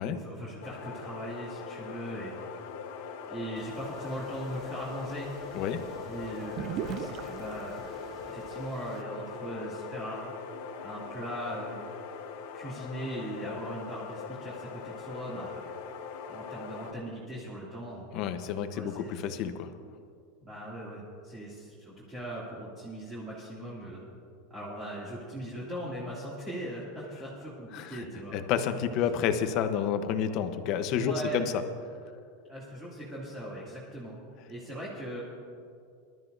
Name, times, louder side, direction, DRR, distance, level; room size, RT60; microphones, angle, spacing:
voice 1, 0.0-2.3 3.3-5.3 6.0-7.8 8.3-10.3 10.8-11.8 12.5-15.7 16.3-18.1 18.7-19.2 20.4-24.0 24.5-28.4 30.4-30.5 31.0-31.4 32.5-34.2 34.5-35.2, right 1 dB, 15° right, -8 dB, 2.5 m, -39 dB
sound 1, 0.6-16.9, left 6 dB, 65° left, 1.2 m, -41 dB
sound 2, 3.6-9.0, right 8 dB, 40° right, 0.6 m, -43 dB
voice 2, 18.1-19.7 27.7-28.0 28.3-31.5, left 8 dB, 45° left, 8 dB, 0.9 m, -30 dB
22.5 x 12.5 x 2.6 m, 2.3 s
supercardioid pair, 150°, 0 cm